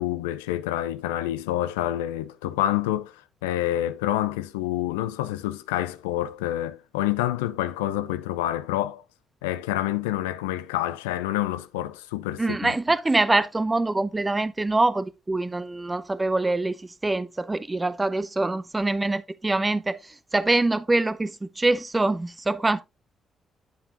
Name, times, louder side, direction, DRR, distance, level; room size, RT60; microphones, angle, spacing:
voice 1, 0.0-9.0 9.4-12.7, left 13 dB, 80° left, 0.3 m, -28 dB
voice 2, 12.4-22.8, right 2 dB, 25° right, 0.7 m, -24 dB
9.0 x 7.4 x 2.5 m
hypercardioid pair, 40°, 0 cm